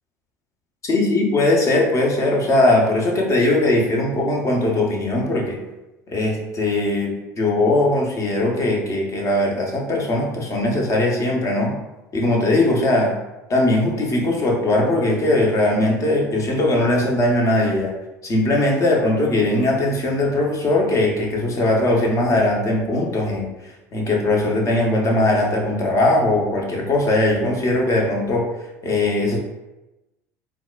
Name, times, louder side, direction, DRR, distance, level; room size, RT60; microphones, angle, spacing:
voice 1, 0.9-5.6 6.1-11.7 12.1-13.1 13.5-17.9 18.2-23.5 23.9-28.5 28.8-29.4, left 2 dB, 35° left, 0 dB, 0.8 m, -20 dB
3.8 x 2.3 x 2.4 m, 1.0 s
hypercardioid pair, 70°, 9 cm